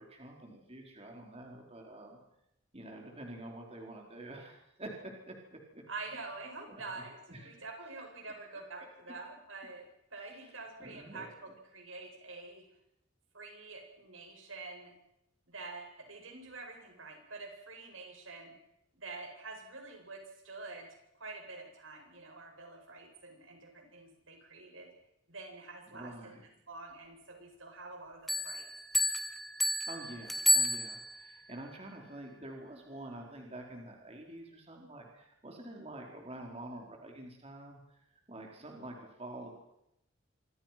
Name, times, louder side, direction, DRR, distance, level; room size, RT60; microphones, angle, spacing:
voice 1, 0.0-2.2 2.7-5.8 6.7-7.0 7.3-7.5 10.8-11.3 25.9-26.5 29.9-38.0 38.3-39.6, right 1 dB, 30° right, 1 dB, 4.4 m, -47 dB
voice 2, 5.9-12.6 13.3-14.9 15.5-18.5 18.9-20.9 21.1-24.9 25.3-26.3 26.7-28.7, right 3 dB, 80° right, 3 dB, 8.0 m, -47 dB
sound 1, 28.3-31.3, equal, ahead, 2.6 m, -31 dB
26.5 x 25.5 x 6.0 m, 0.81 s
head